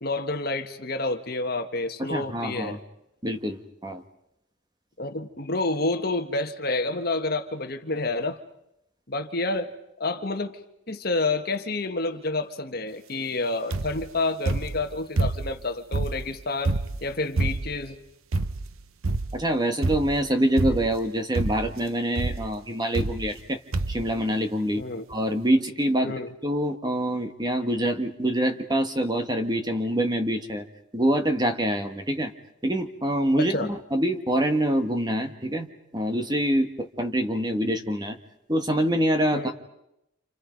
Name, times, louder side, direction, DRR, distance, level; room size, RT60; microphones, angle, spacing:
voice 1, 0.0-2.8 5.0-8.4 9.1-9.7 10.0-10.6 10.9-16.7 17.0-18.0 24.8-25.0 26.0-26.3 33.4-33.7 39.3-39.5, left 2 dB, 45° left, 7 dB, 1.5 m, -29 dB
voice 2, 2.1-2.8 3.2-4.0 19.3-23.6 23.9-24.8 25.1-26.1 26.4-30.6 30.9-32.3 32.6-35.7 35.9-38.2 38.5-39.5, right 1 dB, 20° right, 6 dB, 1.6 m, -25 dB
sound 1, 13.7-14.1 14.5-15.6 15.9-17.9 18.3-18.7 19.0-19.5 19.8-20.2 20.6-21.1 21.3-21.8 22.2-22.5 22.9-23.5 23.7-24.1 24.8-24.9 25.1-25.2, right 2 dB, 90° right, 0.9 m, -27 dB
29.5 x 29.0 x 5.3 m, 0.83 s
head